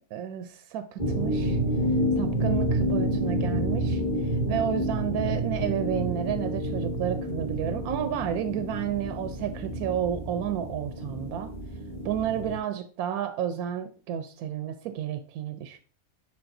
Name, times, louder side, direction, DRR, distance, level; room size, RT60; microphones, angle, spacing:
voice 1, 0.1-1.6 2.2-4.0 4.3-11.5 12.0-15.8, right 10 dB, 85° right, 8 dB, 1.1 m, -31 dB
sound 1, 1.0-12.6, equal, 25° left, 1.5 m, -29 dB
10.5 x 3.6 x 2.6 m, 0.41 s
omnidirectional pair, 1.5 m